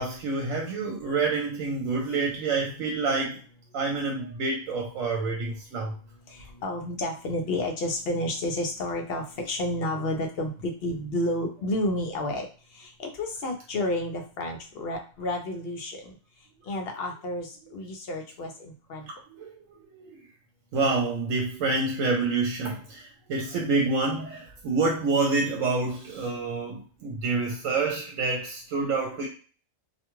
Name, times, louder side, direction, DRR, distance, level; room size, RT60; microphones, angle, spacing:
voice 1, 0.0-3.4 3.7-5.9 19.1-19.5 19.9-20.2 20.7-29.3, right 3 dB, 75° right, 1.0 m, -27 dB
voice 2, 6.3-16.1 16.6-19.1, left 1 dB, 60° left, 0.7 m, -31 dB
2.4 x 2.2 x 3.0 m
omnidirectional pair, 1.4 m